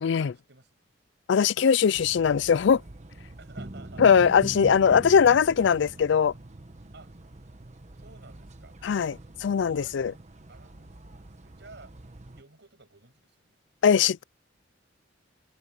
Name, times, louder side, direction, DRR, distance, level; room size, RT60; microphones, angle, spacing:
voice 1, 0.0-0.3 1.3-2.8 4.0-6.3 8.8-10.1 13.8-14.2, left 7 dB, 70° left, 0.4 m, -21 dB
sound 1, 1.9-12.4, right 1 dB, 40° right, 1.1 m, -43 dB
voice 2, 3.4-4.0 5.6-5.7 6.9-7.1 8.0-8.8 9.7-10.2 10.5-12.0 12.3-13.6, right 3 dB, 65° right, 7.8 m, -52 dB
head